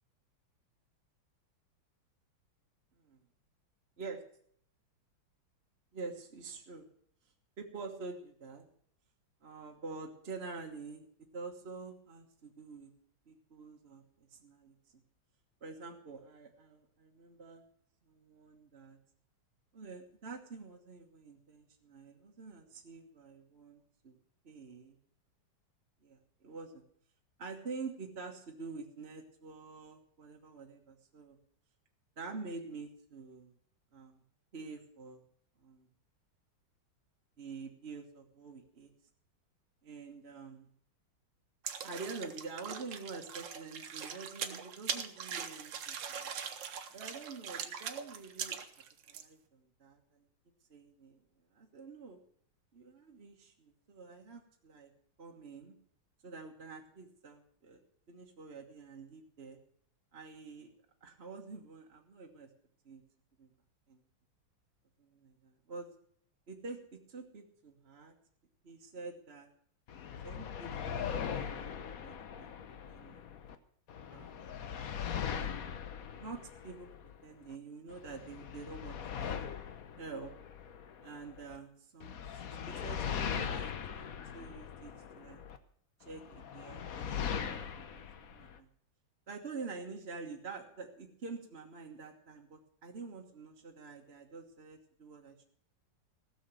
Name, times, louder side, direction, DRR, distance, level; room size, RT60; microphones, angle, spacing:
voice 1, 5.9-6.9 7.6-8.6 9.4-12.9 13.3-15.0 15.6-17.6 18.1-19.0 19.7-24.2 24.4-25.0 26.0-26.8 27.4-31.4 32.2-33.5 33.9-34.2 34.5-35.2 35.6-35.9 37.4-38.9 39.8-40.7 41.8-46.3 46.9-48.6 49.1-50.3 50.7-51.2 51.5-52.2 52.7-54.9 55.2-55.7 56.2-57.8 58.1-59.6 60.1-60.7 61.0-62.5 62.8-63.0 63.4-63.5 63.9-64.0 65.0-65.9 66.5-68.1 68.6-69.5 70.2-72.5 72.9-73.2 74.1-74.3 75.3-75.6 76.1-79.4 80.0-80.3 81.0-85.4 86.0-88.7 89.3-95.4, right 4 dB, 35° right, 1 dB, 1.4 m, -47 dB
sound 1, 41.6-49.2, right 7 dB, 65° right, 1.6 m, -41 dB
sound 2, 69.9-73.5 73.9-77.5 77.9-81.6 82.0-85.6 86.1-88.6, left 8 dB, 55° left, 1.1 m, -40 dB
16.5 x 7.1 x 7.7 m, 0.63 s
omnidirectional pair, 2.3 m